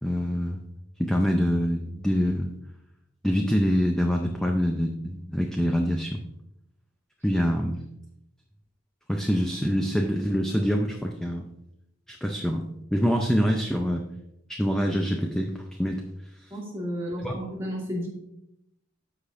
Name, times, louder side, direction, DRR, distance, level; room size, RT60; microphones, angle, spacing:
voice 1, 0.0-0.6 1.0-2.5 3.2-6.2 7.2-7.8 9.1-11.5 12.1-12.7 12.9-14.0 14.5-16.0 17.2-17.3, equal, 5° left, 2 dB, 0.4 m, -25 dB
voice 2, 16.5-18.1, equal, 15° right, -5 dB, 2.3 m, -32 dB
13.5 x 5.0 x 2.5 m, 0.83 s
head